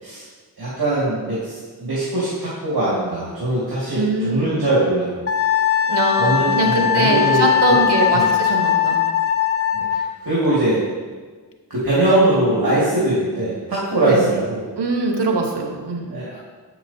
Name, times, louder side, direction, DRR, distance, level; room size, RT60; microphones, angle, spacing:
voice 1, 0.6-5.2 6.2-7.8 8.1-8.3 9.7-10.8 11.7-14.6 16.1-16.4, right 1 dB, 60° right, -8 dB, 1.9 m, -21 dB
voice 2, 3.9-4.5 5.9-9.0 14.1-14.2 14.8-16.1, right 3 dB, 75° right, 2 dB, 1.0 m, -22 dB
Wind instrument woodwind instrument, 5.3-10.1, left 10 dB, 35° left, 0.5 m, -19 dB
7.5 x 5.9 x 2.7 m, 1.5 s
cardioid pair, 45°, 41 cm